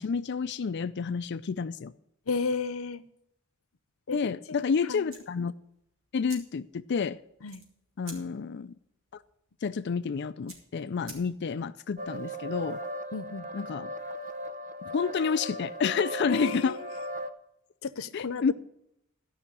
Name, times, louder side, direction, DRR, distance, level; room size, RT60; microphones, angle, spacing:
voice 1, 0.0-1.9 4.1-5.6 6.1-7.2 8.0-8.7 9.6-12.8 13.5-13.9 14.8-16.8 18.1-18.5, left 5 dB, 55° left, 0.4 m, -29 dB
voice 2, 2.3-3.0 4.1-4.2 4.9-5.1 7.4-7.6 13.1-13.5 16.3-16.8 17.8-18.5, left 4 dB, 85° left, 0.7 m, -33 dB
sound 1, 5.1-11.7, right 3 dB, 80° right, 3.0 m, -52 dB
sound 2, 12.0-17.3, equal, 35° right, 0.8 m, -37 dB
13.5 x 5.6 x 8.5 m
head